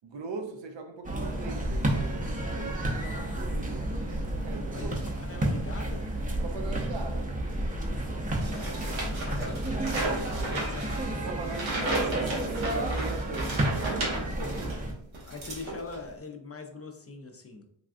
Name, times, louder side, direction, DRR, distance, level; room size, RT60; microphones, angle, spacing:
voice 1, 0.0-3.9 4.4-4.9 6.3-7.4 11.2-14.8, right 4 dB, 70° right, 0.6 m, -40 dB
sound 1, 1.0-14.9, right 1 dB, 20° right, 0.6 m, -31 dB
voice 2, 4.7-6.1 9.1-12.3 15.3-17.7, left 3 dB, 30° left, 0.5 m, -43 dB
sound 2, 8.4-14.8 15.1-16.1, right 2 dB, 90° right, 1.0 m, -34 dB
3.4 x 2.3 x 2.5 m
cardioid pair, 55°, 46 cm